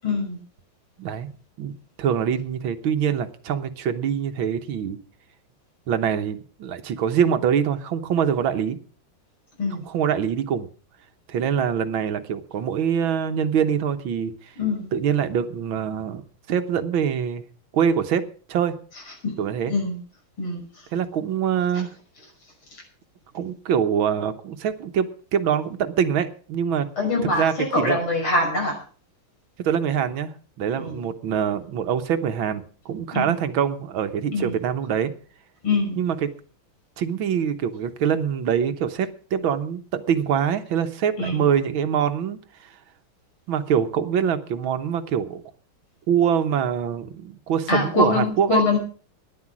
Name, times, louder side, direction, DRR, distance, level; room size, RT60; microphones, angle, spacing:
voice 1, 0.0-0.4 9.6-9.8 14.6-14.9 19.2-19.4 19.6-20.0 20.4-20.9 22.7-22.8 27.0-28.8 30.7-31.0 33.1-33.4 34.3-34.6 35.6-36.0 41.2-41.4 47.7-48.8, left 3 dB, 80° left, 1 dB, 6.7 m, -24 dB
voice 2, 1.0-1.3 1.6-5.0 5.9-8.8 9.9-10.7 11.3-14.5 14.9-17.4 17.7-18.8 19.4-19.7 20.9-21.9 23.3-26.9 27.3-28.0 29.6-35.1 36.0-36.2 37.0-42.7 43.5-45.4 46.1-48.6, right 8 dB, 75° right, 9 dB, 1.9 m, -24 dB
14.0 x 10.5 x 6.1 m, 0.40 s
omnidirectional pair, 2.3 m